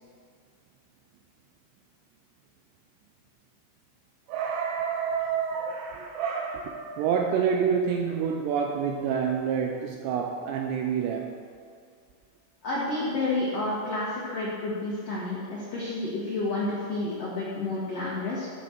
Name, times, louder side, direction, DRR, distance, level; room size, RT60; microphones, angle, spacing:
voice 1, 4.3-11.3, right 7 dB, 80° right, 2 dB, 2.5 m, -28 dB
voice 2, 12.6-18.5, left 2 dB, 60° left, -8 dB, 1.7 m, -30 dB
13.5 x 6.2 x 4.6 m, 2.2 s
omnidirectional pair, 5.5 m